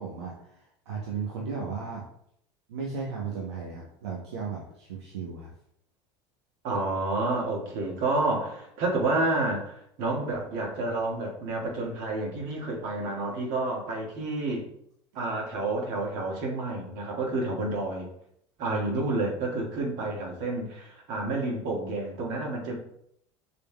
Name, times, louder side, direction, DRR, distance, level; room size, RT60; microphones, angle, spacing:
voice 1, 0.0-2.0 2.7-5.5 18.7-18.8, right 5 dB, 90° right, -3 dB, 0.9 m, -35 dB
voice 2, 6.6-14.6 15.1-18.1 18.6-22.8, right 2 dB, 65° right, -1 dB, 1.7 m, -29 dB
6.6 x 3.6 x 2.3 m, 0.71 s
hypercardioid pair, 85°, 14 cm